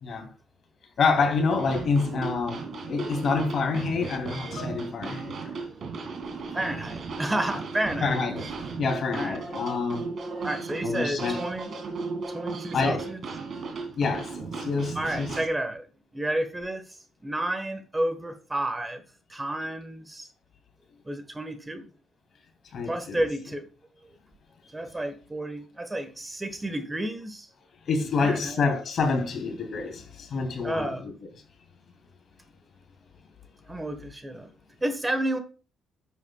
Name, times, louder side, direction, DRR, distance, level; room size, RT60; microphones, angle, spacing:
voice 1, 1.0-5.3 6.5-6.6 8.0-8.5 8.8-10.1 10.8-11.4 12.7-13.1 14.0-15.3 22.7-23.2 27.9-31.1, left 4 dB, 55° left, 2.8 m, -27 dB
sound 1, 1.5-15.5, right 4 dB, 55° right, 2.3 m, -36 dB
voice 2, 5.7-6.1 6.5-8.2 9.1-9.4 10.4-11.7 12.3-13.2 14.9-15.9 16.1-19.0 19.3-20.3 21.0-21.9 22.9-23.7 24.7-27.5 28.2-28.6 30.6-31.0 33.7-34.5 34.8-35.4, right 1 dB, 15° right, 1.3 m, -31 dB
10.5 x 8.1 x 2.3 m
cardioid pair, 90°, 0 cm